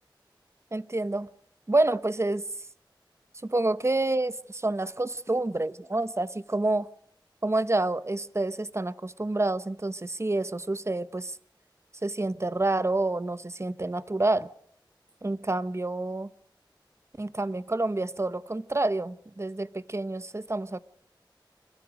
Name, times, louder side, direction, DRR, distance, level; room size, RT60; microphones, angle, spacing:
voice 1, 0.7-1.3 1.7-2.4 3.4-6.9 7.4-11.4 12.0-14.5 15.2-16.3 17.2-20.8, right 2 dB, 35° right, 0.8 m, -28 dB
26.5 x 15.5 x 6.4 m
wide cardioid pair, 55°, 8 cm